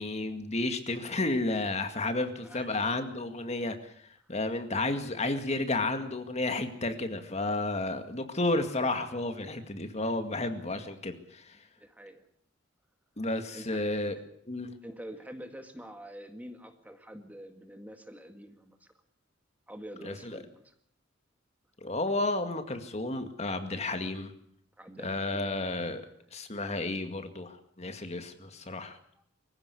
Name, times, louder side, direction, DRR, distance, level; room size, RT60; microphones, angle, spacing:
voice 1, 0.0-3.9 4.3-11.6 13.2-14.2 14.5-14.7 20.0-20.4 21.8-24.3 25.0-26.0 26.3-29.0, left 2 dB, 35° left, 8 dB, 2.1 m, -32 dB
voice 2, 2.4-2.8 4.2-4.3 11.8-12.3 13.5-13.8 14.8-18.9 19.7-20.7 24.8-25.5 29.2-29.3, equal, 10° right, 7 dB, 1.9 m, -46 dB
24.0 x 16.0 x 8.3 m, 0.66 s
head